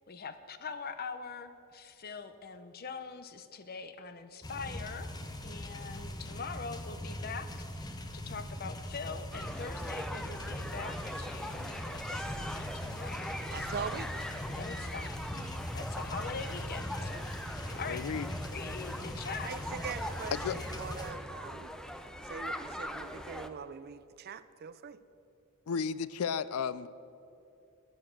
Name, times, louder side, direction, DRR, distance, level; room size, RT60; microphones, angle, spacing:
voice 1, 0.1-5.1 5.4-13.9 14.4-15.2 15.7-18.0 18.5-19.5, left 5 dB, 45° left, 11 dB, 0.7 m, -43 dB
sound 1, 4.4-21.1, left 1 dB, 20° left, 0.9 m, -41 dB
sound 2, 9.3-23.5, equal, 5° left, 0.6 m, -41 dB
voice 2, 13.5-14.2 15.0-15.1 19.4-20.4 20.7-21.7 22.2-25.0, right 6 dB, 50° right, 14 dB, 0.5 m, -42 dB
voice 3, 17.6-18.3 20.3-20.6 25.7-26.9, left 6 dB, 80° left, 17 dB, 0.4 m, -34 dB
13.5 x 10.5 x 6.3 m, 2.7 s
head